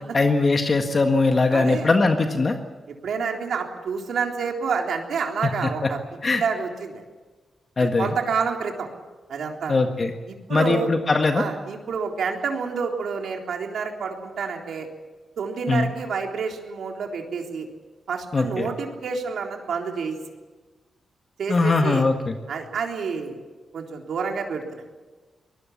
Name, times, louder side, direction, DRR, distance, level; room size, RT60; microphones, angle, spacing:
voice 1, 0.1-2.6 5.4-5.7 6.2-6.4 7.8-8.1 9.7-10.1 10.5-11.5 15.7-15.9 18.3-18.7 21.5-22.4, left 3 dB, 35° left, 5 dB, 1.6 m, -21 dB
voice 2, 1.5-1.9 3.0-6.0 6.3-7.0 7.8-8.9 9.3-9.8 10.3-10.9 11.4-14.9 15.4-17.7 18.1-20.2 21.4-22.1 22.5-23.4 23.7-24.8, right 5 dB, 75° right, 2 dB, 3.6 m, -28 dB
24.0 x 20.0 x 7.2 m, 1.3 s
wide cardioid pair, 130°, 0 cm